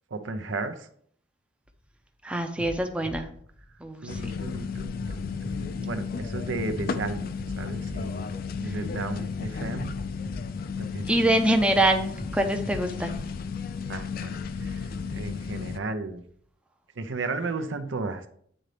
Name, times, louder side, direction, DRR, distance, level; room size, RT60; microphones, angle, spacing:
voice 1, 0.1-0.9 4.0-8.3 8.6-9.9 10.8-11.1 13.9-16.2 17.0-18.3, right 3 dB, 80° right, 9 dB, 0.7 m, -34 dB
sound 1, 1.6-2.0 2.6-4.4 5.0-6.8 7.4-9.2 9.8-11.6 12.2-14.0 14.6-16.4, equal, 35° right, 0.9 m, -44 dB
voice 2, 2.2-3.3 3.8-4.4 8.6-8.8 11.1-13.1, right 1 dB, 5° right, 5 dB, 0.5 m, -25 dB
sound 2, 4.1-15.8, left 5 dB, 50° left, 0.4 m, -33 dB
8.7 x 3.9 x 3.3 m, 0.62 s
head